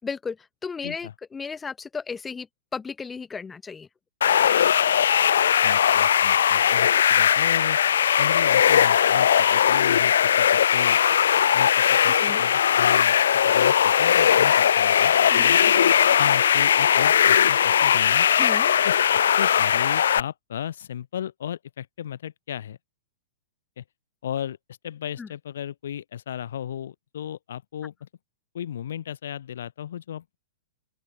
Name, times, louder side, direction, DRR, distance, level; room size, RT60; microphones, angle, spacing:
voice 1, 0.0-0.4 0.6-2.5 2.7-3.9 12.1-12.4 15.3-15.7 18.4-18.7 25.2-25.3, left 5 dB, 10° left, 0.6 m, -34 dB
voice 2, 0.8-1.1 5.6-7.8 8.2-11.0 11.5-13.2 13.4-15.6 16.2-18.3 18.8-22.8 23.8-23.9 24.2-24.6 24.8-28.1 28.5-30.4, left 10 dB, 70° left, 4.4 m, -35 dB
sound 1, 4.2-20.2, left 9 dB, 85° left, 0.6 m, -19 dB
open air
supercardioid pair, 175°, 0 cm